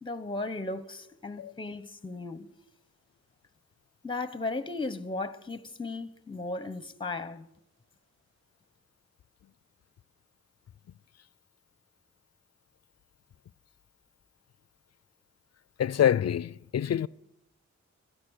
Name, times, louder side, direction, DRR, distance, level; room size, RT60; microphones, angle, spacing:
voice 1, 0.0-2.5 4.0-7.5, left 3 dB, 15° left, 0.9 m, -36 dB
voice 2, 15.8-17.1, left 9 dB, 55° left, 0.5 m, -26 dB
17.0 x 12.5 x 6.4 m
cardioid pair, 50°, 30 cm